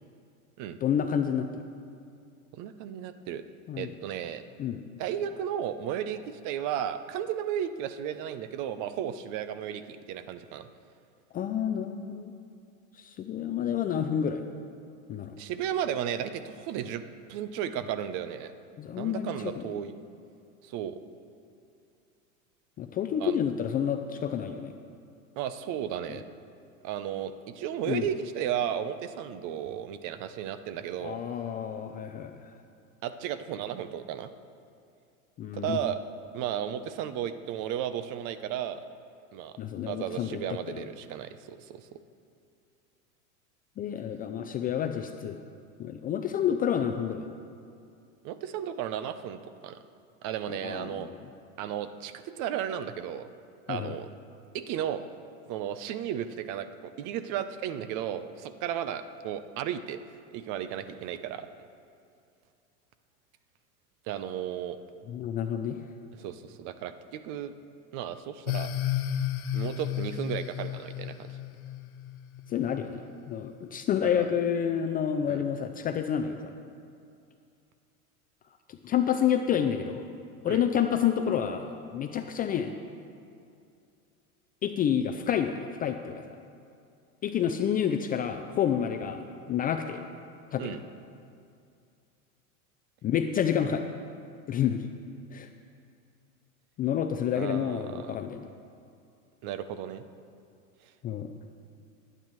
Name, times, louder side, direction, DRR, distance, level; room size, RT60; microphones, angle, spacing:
voice 1, 0.8-1.6 3.7-3.9 4.6-4.8 11.3-12.3 12.9-14.4 15.1-15.4 18.8-19.6 22.8-24.7 26.1-26.2 27.9-28.1 31.0-32.5 35.4-35.8 39.6-40.9 43.8-45.4 45.8-47.3 50.5-51.2 53.7-53.9 65.1-65.8 72.5-73.0 73.3-76.5 78.7-80.1 80.4-82.7 84.6-86.3 87.2-89.2 89.5-90.0 90.5-90.8 93.0-93.8 94.5-94.9 95.3-95.5 96.8-98.5 101.0-101.3, left 9 dB, 20° left, 6 dB, 0.4 m, -29 dB
voice 2, 2.6-3.4 3.8-4.4 5.0-10.7 15.4-17.0 17.3-18.5 19.0-20.0 20.6-21.0 23.2-23.4 25.4-26.2 26.8-31.2 33.0-34.3 35.5-36.0 36.3-38.8 39.3-39.5 39.9-41.9 48.2-49.8 50.2-51.1 51.6-53.3 53.7-54.1 54.5-55.0 55.5-60.0 60.3-61.5 64.1-64.8 66.2-67.5 67.9-68.7 69.5-71.4 74.0-74.3 75.3-75.4 80.4-80.6 90.6-90.8 97.3-98.2 99.4-100.0, right 10 dB, 45° right, 11 dB, 0.8 m, -34 dB
sound 1, 68.5-73.0, left 11 dB, 75° left, 1.0 m, -33 dB
20.5 x 9.0 x 3.1 m, 2.5 s
hypercardioid pair, 110°, 43 cm